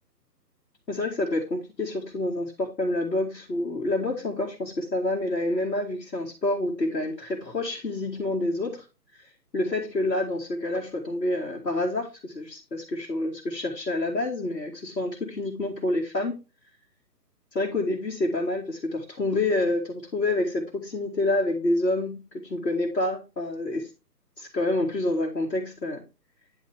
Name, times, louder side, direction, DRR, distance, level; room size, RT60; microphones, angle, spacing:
voice 1, 0.9-8.8 9.2-9.3 9.5-16.4 17.5-23.9 24.4-26.0, left 2 dB, 75° left, -4 dB, 2.2 m, -28 dB
10.0 x 4.2 x 3.5 m, 0.29 s
figure-of-eight pair, 140°, 50 cm